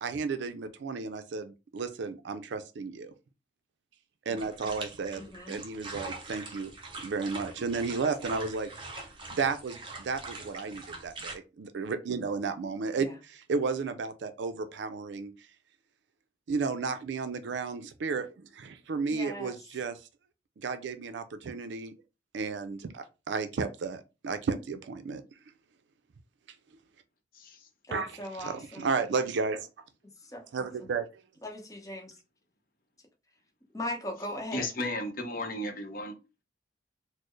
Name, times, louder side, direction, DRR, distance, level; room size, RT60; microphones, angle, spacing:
voice 1, 0.0-3.1 4.3-6.7 7.0-8.9 9.3-15.3 16.5-20.0 20.6-21.9 22.3-25.2 27.9-29.7 30.5-31.1, right 4 dB, 70° right, 0.4 m, -33 dB
sound 1, 4.4-11.3, right 3 dB, 25° right, 0.6 m, -43 dB
voice 2, 5.2-5.6 13.0-13.1 19.0-19.6 27.9-28.9 30.2-30.9 31.4-32.1 33.7-34.7, left 1 dB, 20° left, 0.9 m, -39 dB
voice 3, 27.3-27.7 34.5-36.1, left 1 dB, 50° left, 0.7 m, -34 dB
4.2 x 2.0 x 3.1 m
head